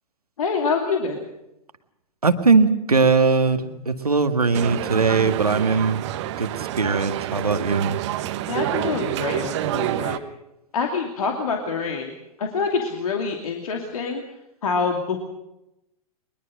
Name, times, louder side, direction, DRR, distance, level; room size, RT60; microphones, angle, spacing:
voice 1, 0.4-1.2 8.5-10.2 10.7-12.1 12.4-14.2 14.6-15.2, left 5 dB, 70° left, 3 dB, 2.8 m, -26 dB
voice 2, 2.2-6.0 6.4-8.0, right 4 dB, 85° right, 9 dB, 1.9 m, -20 dB
sound 1, 4.5-10.2, right 13 dB, 50° right, 1.4 m, -28 dB
23.0 x 21.5 x 6.5 m, 0.88 s
figure-of-eight pair, 100°, 19 cm